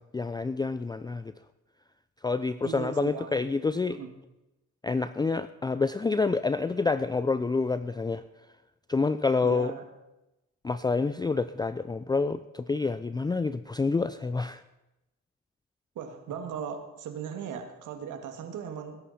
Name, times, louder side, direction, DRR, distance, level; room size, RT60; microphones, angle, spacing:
voice 1, 0.0-1.3 2.2-4.0 4.8-8.2 8.9-9.7 10.6-14.6, left 4 dB, 15° left, 13 dB, 0.4 m, -28 dB
voice 2, 2.6-3.4 3.9-4.1 9.4-9.8 16.0-19.0, right 7 dB, 80° right, 6 dB, 2.1 m, -38 dB
21.0 x 11.0 x 4.3 m, 0.98 s
cardioid pair, 90°, 30 cm